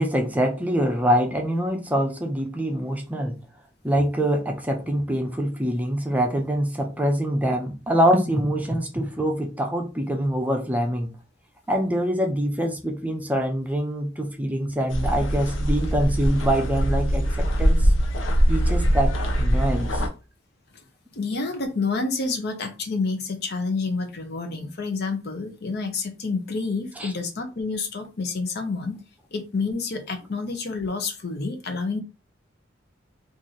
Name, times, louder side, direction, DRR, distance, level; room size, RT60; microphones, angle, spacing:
voice 1, 0.0-3.4 3.8-11.1 11.7-17.9 18.5-20.0 27.0-27.1, equal, 10° right, 0.6 m, -24 dB
sound 1, 14.9-20.1, equal, 90° left, 0.8 m, -22 dB
voice 2, 21.1-29.0 29.3-32.0, left 4 dB, 55° left, 0.7 m, -28 dB
3.0 x 2.6 x 3.9 m
head